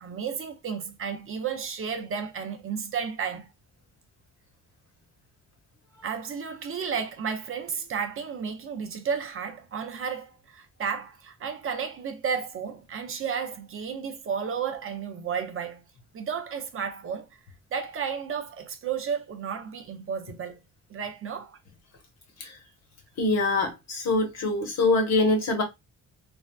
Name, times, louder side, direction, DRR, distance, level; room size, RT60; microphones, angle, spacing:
voice 1, 0.0-3.5 6.0-15.8 16.1-17.3 17.7-20.6 20.9-21.6, right 6 dB, 40° right, 0.5 m, -32 dB
voice 2, 23.2-25.6, left 2 dB, 55° left, 1.0 m, -24 dB
3.3 x 2.3 x 2.2 m
cardioid pair, 135°, 33 cm